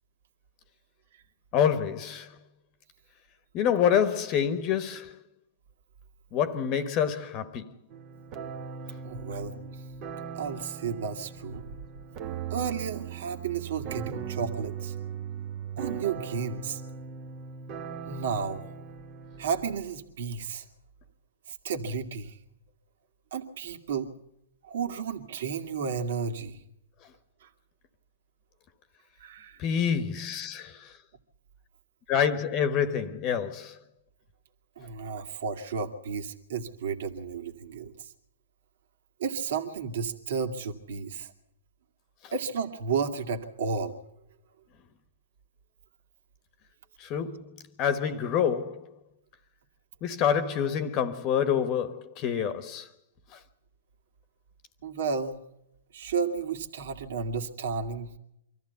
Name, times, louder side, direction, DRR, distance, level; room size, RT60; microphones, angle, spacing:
voice 1, 1.5-2.3 3.5-5.2 6.3-7.7 29.6-30.9 32.1-33.8 47.0-48.9 50.0-52.9, left 8 dB, 30° left, 1.3 m, -27 dB
sound 1, 7.9-19.8, right 7 dB, 35° right, 1.2 m, -39 dB
voice 2, 9.0-9.8 10.3-11.7 12.5-14.9 15.8-16.8 18.1-18.6 19.4-20.7 21.5-22.4 23.3-24.1 24.6-26.6 27.4-27.5 29.2-29.6 34.8-38.1 39.2-41.3 42.3-44.0 54.8-55.4 55.9-58.1, right 5 dB, 65° right, 2.4 m, -32 dB
25.5 x 14.5 x 8.2 m
hypercardioid pair, 140°, 0 cm